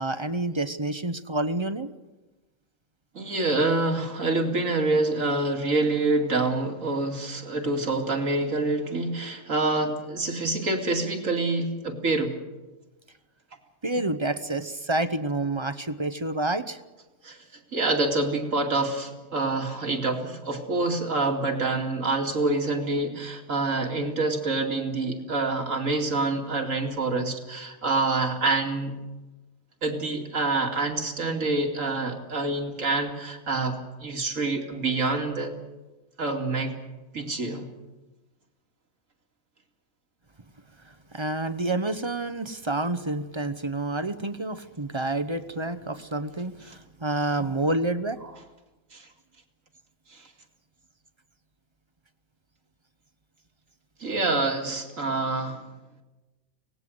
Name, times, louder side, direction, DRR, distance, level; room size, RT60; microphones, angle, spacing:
voice 1, 0.0-1.9 13.8-16.8 41.1-48.2, right 2 dB, 25° right, 12 dB, 0.8 m, -28 dB
voice 2, 3.1-12.3 17.2-17.4 17.7-28.9 29.8-35.5 36.2-36.7 37.1-37.7 48.9-49.1 50.1-50.3 54.0-55.6, right 2 dB, 75° right, 3 dB, 2.9 m, -26 dB
25.0 x 18.5 x 7.8 m, 1.1 s
omnidirectional pair, 1.4 m